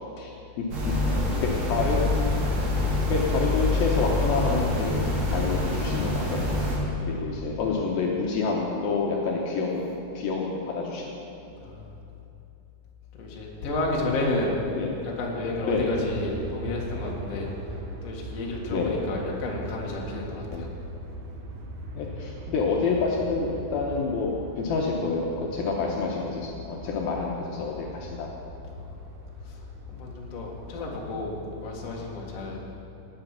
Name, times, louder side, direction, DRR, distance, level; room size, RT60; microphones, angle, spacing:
voice 1, 0.6-0.9 1.4-2.4 3.1-5.0 5.3-6.6 7.1-11.2 14.7-14.9 15.6-15.9 18.7-19.0 20.5-20.6 21.9-24.3 24.6-28.3 32.5-32.8, left 4 dB, 75° left, -2 dB, 2.7 m, -28 dB
sound 1, 0.7-6.8, left 2 dB, 45° right, 3.4 m, -26 dB
voice 2, 6.9-7.3 11.6-11.8 13.1-14.6 15.0-20.7 28.8-29.0 29.4-29.6 29.9-32.6, left 2 dB, 45° left, -2 dB, 2.4 m, -31 dB
Aircraft, 15.5-31.7, right 2 dB, 65° right, 1.9 m, -41 dB
18.5 x 8.1 x 5.8 m, 2.8 s
omnidirectional pair, 4.6 m